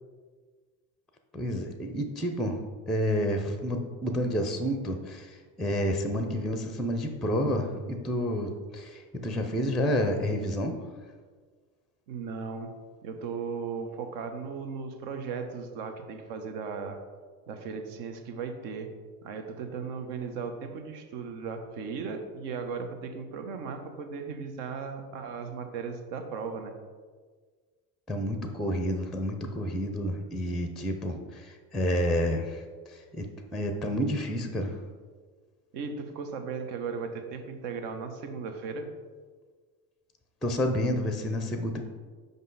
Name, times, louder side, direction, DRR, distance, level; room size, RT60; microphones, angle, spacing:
voice 1, 1.3-2.6 2.9-10.8 28.1-34.8 40.4-41.8, equal, ahead, 6 dB, 0.5 m, -30 dB
voice 2, 12.1-12.7 13.0-17.0 17.5-18.9 19.2-26.7 35.7-38.9, right 5 dB, 65° right, 5 dB, 1.0 m, -36 dB
5.4 x 5.3 x 4.0 m, 1.5 s
hypercardioid pair, 80°, 48 cm